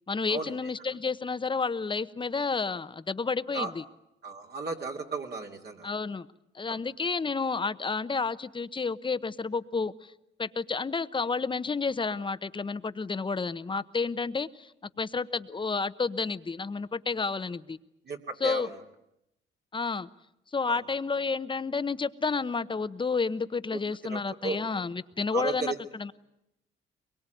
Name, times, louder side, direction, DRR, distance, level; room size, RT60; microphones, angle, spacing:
voice 1, 0.1-3.8 5.8-6.3 6.5-10.1 10.4-14.7 15.0-17.8 18.4-18.7 19.7-20.1 20.5-26.1, left 4 dB, 25° left, 13 dB, 1.0 m, -30 dB
voice 2, 4.2-5.9 6.7-6.8 18.1-18.7 20.7-20.8 24.1-24.6 25.3-25.8, right 4 dB, 55° right, 0 dB, 2.7 m, -34 dB
23.5 x 22.5 x 9.2 m, 0.84 s
cardioid pair, 90°, 20 cm